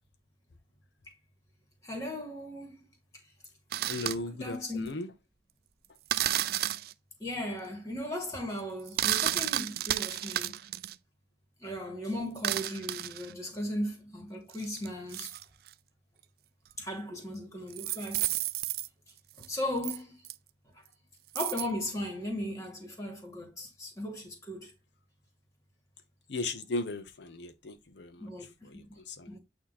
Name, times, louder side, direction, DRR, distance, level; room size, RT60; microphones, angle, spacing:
voice 1, 1.8-2.8 4.4-4.9 6.2-6.4 7.2-10.5 11.6-15.3 16.8-18.3 19.5-20.2 21.3-24.7 28.2-28.8 29.3-29.4, left 1 dB, 20° left, 2.0 m, -37 dB
sound 1, 3.7-4.2 6.1-6.9 8.9-11.0 12.4-13.3 14.5-15.7 16.7-16.8 17.7-18.9 19.4-19.5 19.8-20.0 20.2-20.3 21.4-21.7, right 13 dB, 55° right, 0.3 m, -32 dB
voice 2, 3.9-5.1 26.3-29.3, left 2 dB, 75° left, 0.7 m, -37 dB
8.5 x 2.8 x 4.1 m
head